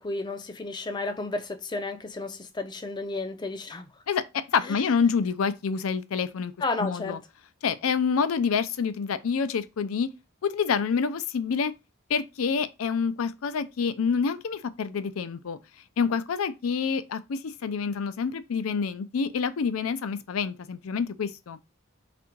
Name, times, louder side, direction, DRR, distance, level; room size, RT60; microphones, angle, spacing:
voice 1, 0.0-3.9 4.6-4.8 6.6-7.2, left 3 dB, 20° left, 0.4 m, -32 dB
voice 2, 4.5-6.5 6.8-7.2 7.6-10.1 10.4-11.7 12.1-15.6 16.0-21.6, left 6 dB, 85° left, 0.4 m, -27 dB
3.5 x 2.5 x 4.4 m
head